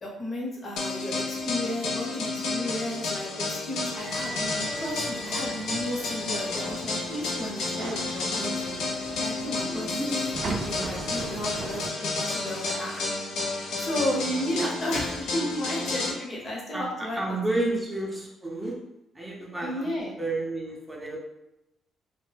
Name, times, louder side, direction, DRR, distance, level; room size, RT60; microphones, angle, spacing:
voice 1, 0.0-10.0 10.5-11.8 12.1-13.0 13.8-17.8 19.6-20.2, left 1 dB, 40° left, -1 dB, 0.8 m, -33 dB
sound 1, 0.8-16.1, left 3 dB, 80° left, 0.5 m, -31 dB
sound 2, 4.0-11.9, right 3 dB, 65° right, 0.3 m, -39 dB
voice 2, 9.5-10.2 16.7-18.8 19.2-19.9 20.2-21.2, right 2 dB, 15° right, -2 dB, 0.5 m, -31 dB
2.1 x 2.0 x 3.2 m, 0.90 s
cardioid pair, 90°, 0 cm